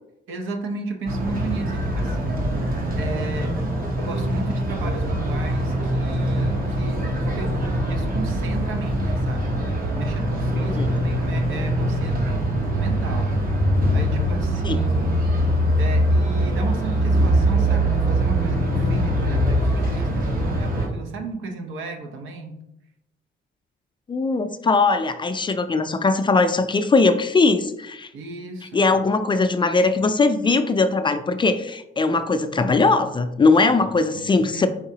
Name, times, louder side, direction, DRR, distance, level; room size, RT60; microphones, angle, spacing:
voice 1, 0.3-2.7 3.0-3.5 4.0-7.5 7.9-9.5 10.0-13.3 13.9-15.2 15.8-22.6 28.1-29.0 33.7-34.7, right 3 dB, 80° right, 4 dB, 0.8 m, -34 dB
sound 1, 1.1-20.9, right 1 dB, 45° right, 1.1 m, -22 dB
voice 2, 10.5-10.9 14.6-14.8 24.1-28.1 28.7-34.7, left 3 dB, 25° left, 9 dB, 0.3 m, -20 dB
4.8 x 3.6 x 2.8 m, 0.84 s
cardioid pair, 90°, 20 cm